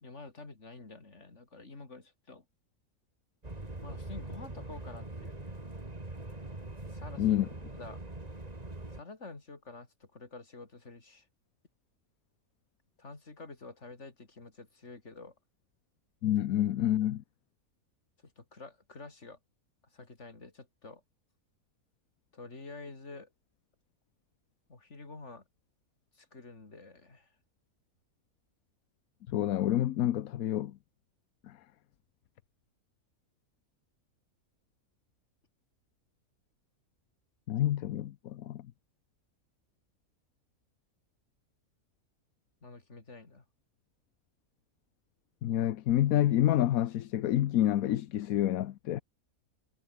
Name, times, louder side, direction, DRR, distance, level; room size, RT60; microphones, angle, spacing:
voice 1, 0.0-2.4 3.8-5.5 6.8-7.2 7.7-8.0 8.9-11.3 13.0-15.3 18.4-19.4 19.9-21.0 22.3-23.3 24.7-25.4 26.2-27.3 42.6-43.4, left 3 dB, 50° left, 3.5 m, -48 dB
sound 1, 3.4-9.0, right 2 dB, 25° right, 3.0 m, -42 dB
voice 2, 7.2-7.5 16.2-17.2 29.3-30.8 31.4-31.6 37.5-38.7 45.4-49.0, left 12 dB, 75° left, 1.2 m, -28 dB
omnidirectional pair, 1.5 m